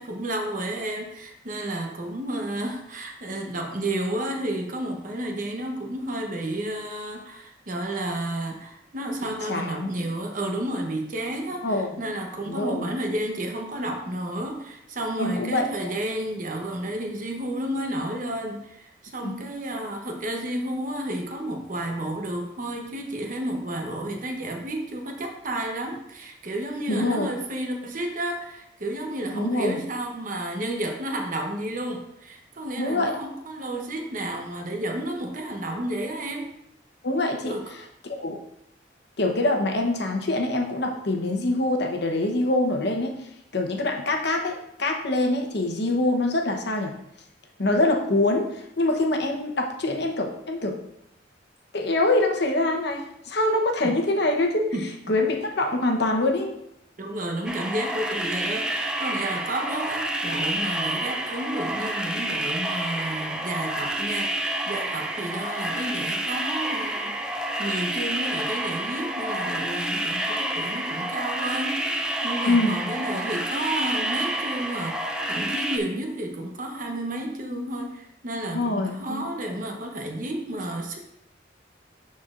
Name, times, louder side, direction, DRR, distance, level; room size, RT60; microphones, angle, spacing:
voice 1, 0.0-36.5 37.4-37.6 53.8-53.9 54.7-54.9 57.0-67.3 67.6-81.1, right 1 dB, 45° right, 2 dB, 0.9 m, -31 dB
voice 2, 9.2-9.9 11.6-11.9 12.5-12.9 15.2-15.9 19.2-19.4 26.9-27.3 29.3-29.8 32.8-33.1 37.0-38.4 39.2-43.2 43.5-46.9 47.6-50.8 51.7-54.7 55.1-56.6 72.5-72.8 78.5-79.2, left 2 dB, 60° left, 2 dB, 0.9 m, -25 dB
sound 1, 57.5-75.8, right 1 dB, 5° right, 0.4 m, -29 dB
12.5 x 4.3 x 2.5 m, 0.78 s
head